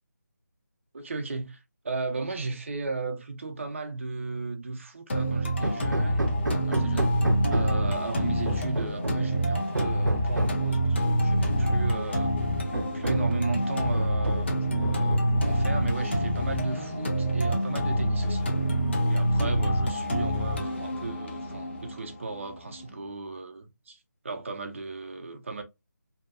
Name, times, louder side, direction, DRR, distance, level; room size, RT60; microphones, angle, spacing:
voice 1, 0.9-7.1 7.5-12.3 12.9-18.5 19.1-24.0 24.2-25.6, right 3 dB, 40° right, 0.5 m, -35 dB
sound 1, 5.1-23.1, equal, 35° left, 0.6 m, -27 dB
Hammer, 5.6-7.9 8.5-9.3 9.7-10.7 11.7-11.8 12.2-12.3 12.7-13.4 13.9-14.5 14.8-15.5, right 1 dB, 90° right, 0.5 m, -31 dB
sound 2, 11.5-22.4, left 2 dB, 70° left, 0.8 m, -44 dB
2.7 x 2.2 x 2.4 m
figure-of-eight pair, 160°, 10 cm